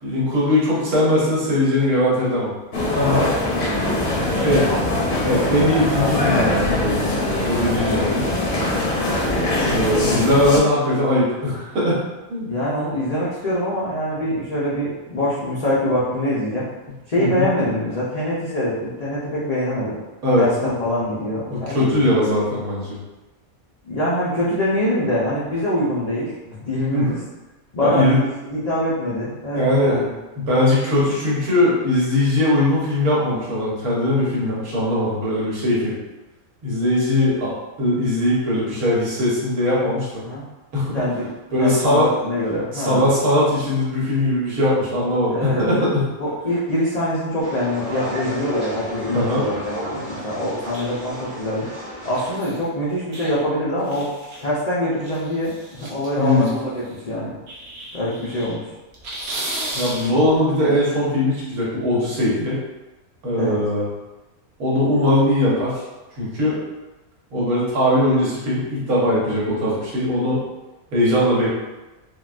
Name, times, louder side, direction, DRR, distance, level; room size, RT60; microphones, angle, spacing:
voice 1, 0.0-2.5 2.9-3.3 4.3-4.7 5.2-8.3 9.6-12.0 12.3-12.5 17.2-17.5 20.2-20.7 21.5-23.0 26.9-27.1 27.8-28.2 29.5-30.0 30.4-35.9 36.6-40.2 40.7-41.0 41.5-42.1 42.7-46.1 49.1-49.5 56.2-56.5 59.7-62.6 63.2-63.9 64.6-65.8 66.2-66.6 67.3-70.4 70.9-71.5, left 1 dB, 85° right, -7 dB, 1.5 m, -20 dB
sound 1, 2.7-10.6, left 1 dB, 50° left, 0.7 m, -22 dB
voice 2, 3.2-3.5 7.8-8.3 8.6-8.9 12.5-16.7 17.1-20.0 20.4-22.1 23.9-27.2 27.7-28.1 28.4-30.1 40.2-40.4 40.9-41.3 41.6-43.1 45.3-45.7 46.2-51.7 52.0-54.1 54.4-57.3 57.9-58.6 63.4-63.6, left 1 dB, 75° left, -8 dB, 0.3 m, -24 dB
sound 2, 47.4-52.4, equal, 40° right, 1.3 m, -32 dB
sound 3, 50.7-51.2 52.1-52.6 53.1-53.4 53.8-54.6 55.0-57.0 57.5-58.6 58.9-60.3, right 1 dB, 60° right, 0.8 m, -34 dB
3.7 x 2.2 x 2.4 m, 1.1 s
omnidirectional pair, 1.5 m